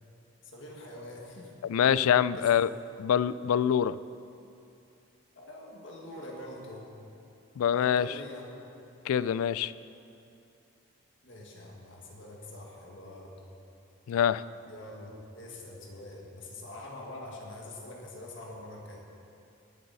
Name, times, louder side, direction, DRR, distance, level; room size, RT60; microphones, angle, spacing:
voice 1, 0.4-1.6 2.0-2.1 2.4-2.7 5.4-6.9 7.7-8.5 11.2-13.3 14.7-19.0, left 1 dB, 60° left, -1 dB, 1.8 m, -45 dB
voice 2, 1.6-2.7 3.0-4.0 7.6-8.1 9.1-9.7 14.1-14.4, left 9 dB, 85° left, 18 dB, 0.3 m, -25 dB
19.5 x 7.8 x 4.1 m, 2.7 s
head